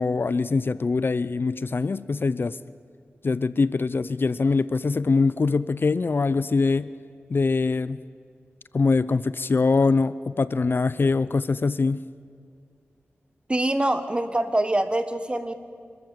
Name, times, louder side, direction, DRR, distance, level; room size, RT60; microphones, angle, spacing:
voice 1, 0.0-2.6 3.2-6.9 7.3-8.0 8.7-12.0, left 4 dB, 55° left, 17 dB, 0.5 m, -23 dB
voice 2, 13.5-15.6, right 1 dB, 25° right, 10 dB, 1.3 m, -24 dB
27.0 x 14.0 x 7.4 m, 2.2 s
wide cardioid pair, 75°, 4 cm